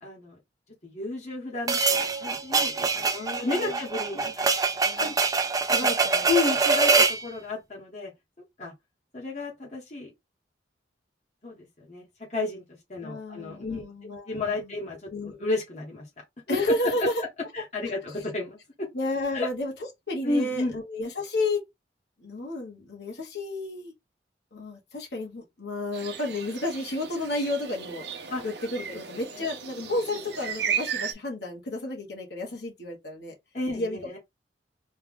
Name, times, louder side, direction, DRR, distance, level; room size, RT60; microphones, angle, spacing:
voice 1, 0.0-0.4 0.8-3.1 3.4-4.4 5.0-5.2 5.8-5.9 6.2-8.1 8.6-8.7 9.1-10.1 11.4-13.8 14.3-16.1 16.5-16.6 17.5-18.9 19.3-19.5 20.2-20.8 28.3-28.5 28.9-29.0 29.3-29.5 29.8-29.9 33.5-34.2, left 3 dB, 40° left, 1.2 m, -32 dB
sound 1, 1.7-7.2, right 4 dB, 20° right, 0.4 m, -24 dB
voice 2, 3.0-3.8 4.8-5.1 5.7-6.3 13.0-14.7 15.1-15.4 16.5-17.1 18.9-19.7 20.1-21.6 22.2-23.9 24.5-33.3 33.7-34.2, left 2 dB, 65° left, 1.3 m, -32 dB
sound 2, 25.9-31.1, right 8 dB, 70° right, 0.7 m, -35 dB
3.3 x 2.4 x 3.6 m
head